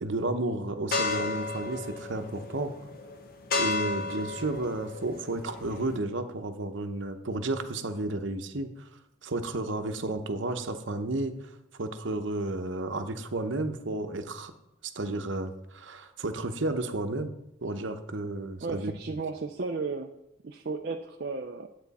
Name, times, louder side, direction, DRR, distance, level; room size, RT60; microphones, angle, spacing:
voice 1, 0.0-2.7 3.5-8.7 9.2-11.5 11.8-14.5 14.8-17.3 17.6-19.0, right 2 dB, 65° right, 8 dB, 0.9 m, -32 dB
sound 1, 0.9-6.0, left 3 dB, 45° left, 0.8 m, -33 dB
voice 2, 18.6-20.1 20.4-21.7, right 4 dB, 50° right, 3 dB, 0.5 m, -34 dB
10.5 x 8.3 x 4.2 m, 0.87 s
head